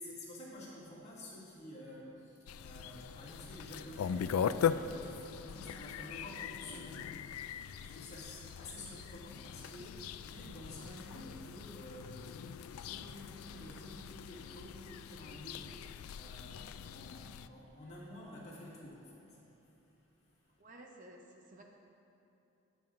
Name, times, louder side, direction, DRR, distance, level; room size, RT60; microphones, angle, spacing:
voice 1, 0.0-20.6, left 1 dB, 30° left, -7 dB, 2.2 m, -50 dB
sound 1, 2.5-17.5, left 7 dB, 85° left, 0.3 m, -40 dB
voice 2, 20.6-21.6, right 1 dB, 35° right, 1 dB, 0.7 m, -54 dB
21.0 x 7.3 x 2.6 m, 2.9 s
head